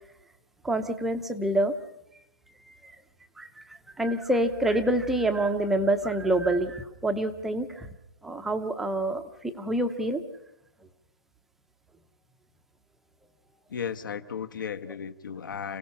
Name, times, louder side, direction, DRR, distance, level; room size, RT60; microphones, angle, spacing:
voice 1, 0.6-1.7 2.8-2.9 3.4-7.9 8.2-10.2, right 1 dB, ahead, 6 dB, 0.7 m, -27 dB
voice 2, 13.7-15.8, left 7 dB, 60° left, 9 dB, 1.2 m, -35 dB
30.0 x 17.0 x 5.6 m, 0.83 s
hypercardioid pair, 170°, 12 cm